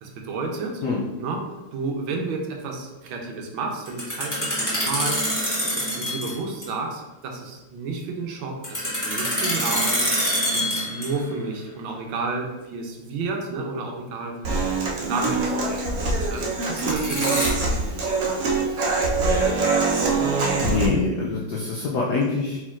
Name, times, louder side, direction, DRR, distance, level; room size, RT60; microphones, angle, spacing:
voice 1, 0.0-0.8 1.2-5.3 5.8-10.0 10.5-14.6 15.0-15.8 16.3-18.4, right 3 dB, 75° right, 1 dB, 1.4 m, -31 dB
sound 1, 3.9-6.4 6.6-6.7 8.6-11.3 16.6-17.5, equal, 10° left, 0.9 m, -25 dB
Human voice / Acoustic guitar, 14.4-20.9, right 3 dB, 60° right, 0.9 m, -23 dB
voice 2, 20.6-22.6, left 4 dB, 75° left, -3 dB, 0.9 m, -24 dB
4.4 x 4.4 x 2.4 m, 1.0 s
omnidirectional pair, 2.3 m